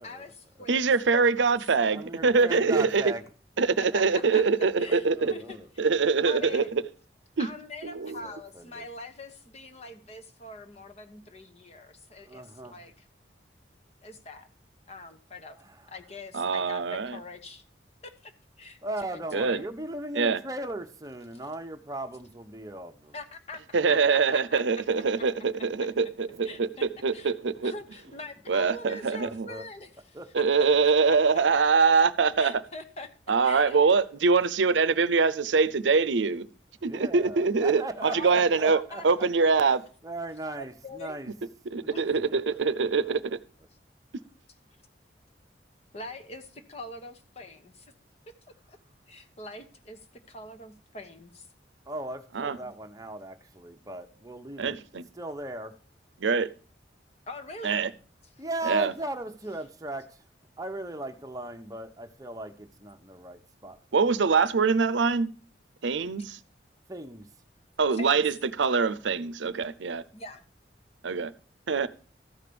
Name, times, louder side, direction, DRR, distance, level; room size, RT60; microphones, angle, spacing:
voice 1, 0.0-0.9 1.4-1.5 3.8-4.4 4.8-5.8 6.2-6.7 7.4-13.1 14.0-14.5 14.9-15.6 15.9-17.6 18.0-19.7 23.1-24.8 26.4-26.8 27.1-29.9 30.3-31.2 32.4-33.1 33.4-33.8 38.1-39.8 40.6-41.2 41.9-42.4 45.9-47.9 48.7-48.8 49.1-50.0 50.3-51.5 52.5-52.7 57.3-57.9 58.2-58.3 67.9-68.2 70.1-70.4, left 2 dB, 35° left, 1.1 m, -43 dB
voice 2, 0.7-3.1 3.6-5.3 5.8-6.8 7.4-7.5 7.9-8.1 16.3-17.2 19.3-19.6 20.2-20.4 23.7-27.7 28.5-29.5 30.3-32.6 33.3-36.5 36.8-38.8 39.0-39.8 41.7-43.4 52.4-52.6 54.6-55.0 56.2-56.5 57.6-57.9 58.6-58.9 63.9-65.3 65.8-66.4 67.8-70.0 71.0-71.3 71.7-71.9, right 4 dB, 90° right, 0.6 m, -24 dB
voice 3, 1.9-3.3 3.9-5.7 6.4-6.6 8.2-8.9 12.2-12.8 15.6-15.9 18.8-23.1 26.9-27.0 27.5-27.6 29.2-29.6 30.1-30.3 30.7-30.8 31.1-31.2 31.5-31.6 36.8-39.0 40.0-41.3 41.8-43.3 51.9-54.8 55.1-55.8 58.4-60.2 60.6-63.8 66.9-67.3, right 2 dB, 20° right, 0.9 m, -38 dB
14.0 x 5.0 x 6.9 m
head